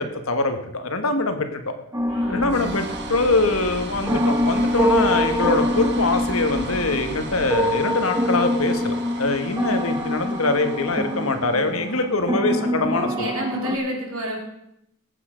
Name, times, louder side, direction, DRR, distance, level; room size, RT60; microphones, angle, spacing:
voice 1, 0.0-1.6 2.3-13.3, left 3 dB, 65° left, 7 dB, 1.5 m, -23 dB
sound 1, 1.9-13.8, left 1 dB, 15° right, 1.1 m, -25 dB
sound 2, 2.0-12.5, right 3 dB, 50° right, 1.7 m, -37 dB
voice 2, 2.1-2.8 13.2-14.4, equal, 75° right, -1 dB, 4.2 m, -29 dB
19.0 x 8.4 x 5.2 m, 0.81 s
head